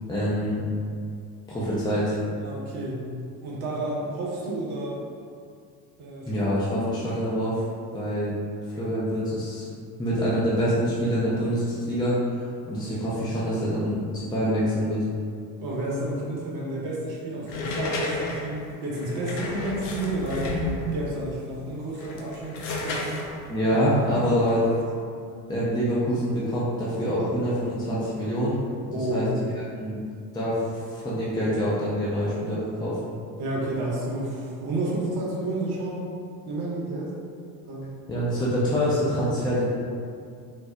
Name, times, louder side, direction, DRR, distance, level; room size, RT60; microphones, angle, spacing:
voice 1, 0.1-0.7 1.5-2.2 6.3-7.6 7.9-8.3 8.8-9.7 10.0-15.0 23.5-24.6 25.5-28.6 29.1-29.3 29.7-30.0 30.3-33.0 38.1-39.7, equal, 10° left, -8 dB, 0.6 m, -25 dB
voice 2, 2.3-3.1 3.4-5.0 6.0-6.9 15.6-20.6 20.9-22.6 22.8-23.2 28.9-29.3 33.4-36.0 36.4-37.1 37.6-37.9, right 1 dB, 50° right, -5 dB, 1.1 m, -31 dB
sound 1, 17.5-21.1 21.8-24.8, left 2 dB, 60° left, 0.7 m, -32 dB
4.2 x 2.0 x 2.4 m, 2.3 s
hypercardioid pair, 70°, 50 cm